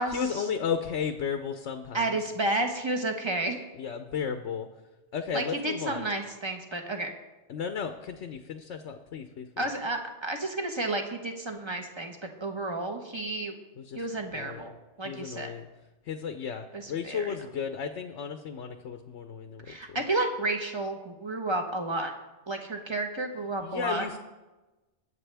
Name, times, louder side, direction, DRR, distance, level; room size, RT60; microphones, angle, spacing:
voice 1, 0.1-2.2 3.7-4.7 5.1-6.1 7.5-9.7 13.8-14.1 14.3-14.6 15.0-15.7 16.0-20.0 23.6-24.2, left 6 dB, 80° left, 7 dB, 1.0 m, -34 dB
voice 2, 1.9-3.6 5.3-7.1 9.6-13.5 13.9-15.5 16.7-17.3 19.7-22.1 22.5-24.1, right 2 dB, 25° right, 4 dB, 1.2 m, -31 dB
21.0 x 7.5 x 3.4 m, 1.1 s
omnidirectional pair, 1.2 m